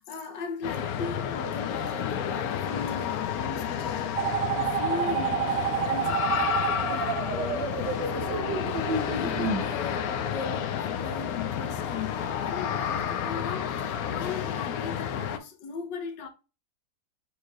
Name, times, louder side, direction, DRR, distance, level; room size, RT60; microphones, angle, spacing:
voice 1, 0.0-16.3, left 5 dB, 90° left, 1.5 m, -38 dB
sound 1, 0.6-15.4, left 8 dB, 65° left, 1.0 m, -31 dB
sound 2, 4.2-9.6, right 7 dB, 90° right, 1.5 m, -29 dB
6.6 x 3.2 x 2.4 m
omnidirectional pair, 1.9 m